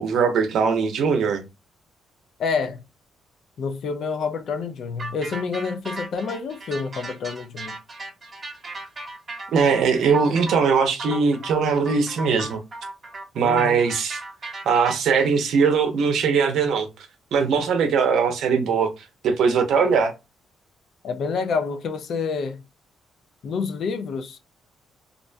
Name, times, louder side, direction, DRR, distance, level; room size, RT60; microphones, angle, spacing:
voice 1, 0.0-1.4 9.5-12.6 13.3-14.2 14.7-16.9 17.3-18.9 19.2-20.1, right 5 dB, 75° right, 0.6 m, -20 dB
voice 2, 2.4-2.8 3.6-7.8 13.4-13.8 21.0-22.6 23.4-24.4, left 5 dB, 65° left, 0.5 m, -28 dB
sound 1, 5.0-15.3, right 2 dB, 35° right, 0.9 m, -36 dB
2.5 x 2.1 x 2.5 m
cardioid pair, 90°, 0 cm